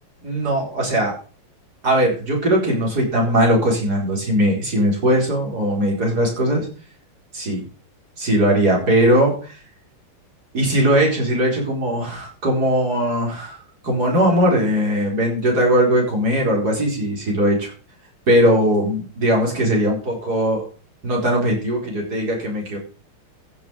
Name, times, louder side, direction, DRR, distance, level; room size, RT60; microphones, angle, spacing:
voice 1, 0.2-1.1 1.8-6.7 7.3-7.6 8.2-9.6 10.5-13.6 13.8-17.7 18.3-20.6 21.0-22.8, equal, 45° right, -1 dB, 5.0 m, -19 dB
15.0 x 6.3 x 5.2 m, 0.39 s
omnidirectional pair, 2.3 m